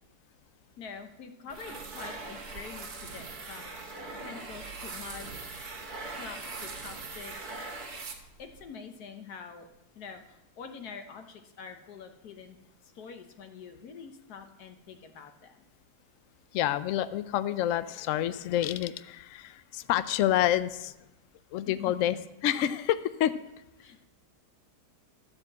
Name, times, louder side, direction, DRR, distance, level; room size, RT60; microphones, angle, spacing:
voice 1, 0.8-3.8 4.2-5.6 6.1-7.7 8.4-9.7 9.9-12.6 12.8-15.6 21.8-22.2 23.8-24.1, left 6 dB, 65° left, 6 dB, 1.4 m, -46 dB
sound 1, 1.5-8.6, right 3 dB, 60° right, 1.8 m, -41 dB
voice 2, 16.5-20.9 21.5-22.1 22.4-23.3, left 12 dB, 90° left, 14 dB, 0.7 m, -28 dB
12.5 x 4.4 x 7.6 m, 0.92 s
omnidirectional pair, 1.9 m